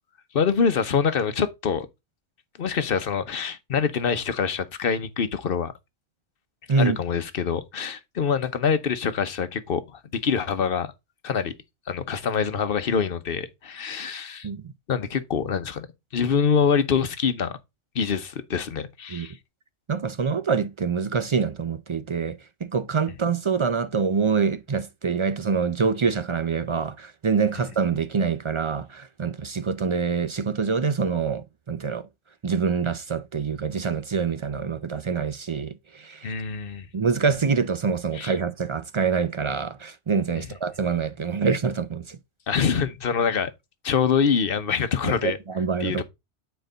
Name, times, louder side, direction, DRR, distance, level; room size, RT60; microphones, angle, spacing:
voice 1, 0.3-1.9 2.6-5.7 6.8-10.9 11.2-11.5 11.9-14.5 14.9-15.9 16.1-17.6 17.9-19.4 36.2-36.9 38.1-38.3 42.5-43.5 43.8-45.4 45.8-46.0, left 6 dB, 55° left, 1.0 m, -25 dB
voice 2, 19.9-32.1 32.4-36.3 36.9-42.2 45.0-46.0, right 5 dB, 50° right, 0.3 m, -25 dB
8.9 x 4.6 x 3.9 m
omnidirectional pair, 1.2 m